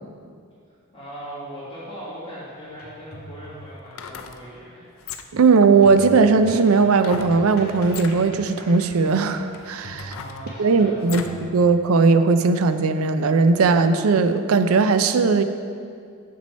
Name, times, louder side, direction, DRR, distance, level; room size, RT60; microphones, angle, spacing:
voice 1, 0.9-4.9 10.0-11.3, equal, 25° left, -14 dB, 1.9 m, -39 dB
sound 1, 2.6-2.7 3.8-4.4 5.0-5.5 7.0-7.4 7.8-8.2 8.9-9.0 9.5-11.4 11.8-11.9, left 8 dB, 70° left, 0.4 m, -38 dB
sound 2, 2.7-3.8 5.8-11.4, equal, 50° left, 1.7 m, -41 dB
voice 2, 5.3-10.1 10.6-11.2 11.5-15.4, right 4 dB, 85° right, 9 dB, 0.4 m, -18 dB
7.0 x 6.1 x 4.2 m, 2.3 s
head